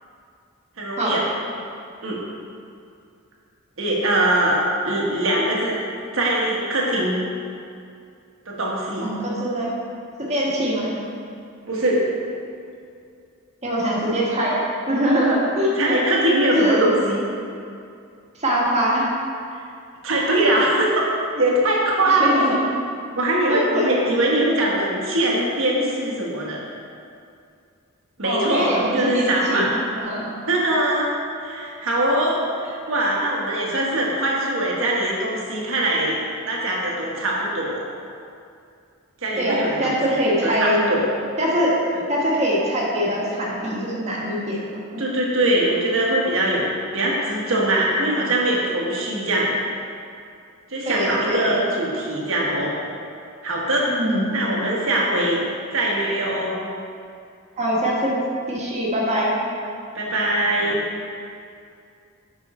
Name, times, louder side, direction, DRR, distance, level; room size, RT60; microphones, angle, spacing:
voice 1, 0.8-1.2 2.0-2.2 3.8-5.8 6.1-7.2 8.5-9.1 11.7-12.0 15.8-17.2 20.0-21.1 21.3-22.5 23.1-26.6 28.2-29.7 30.5-31.1 31.4-36.2 36.5-37.8 39.2-40.0 40.4-41.1 41.9-42.0 45.0-46.7 46.9-49.5 50.7-52.7 53.4-53.9 54.3-55.4 55.7-56.5 59.9-60.8, right 1 dB, 65° right, -3 dB, 1.4 m, -22 dB
voice 2, 9.0-9.7 10.3-10.9 13.6-16.0 16.5-16.9 18.4-19.1 22.1-22.7 23.5-23.9 28.2-30.3 39.4-40.8 41.4-41.8 42.1-44.7 50.8-51.6 53.9-54.3 57.6-58.1 58.5-59.4, equal, 30° right, -5 dB, 1.5 m, -22 dB
7.2 x 5.5 x 4.3 m, 2.4 s
head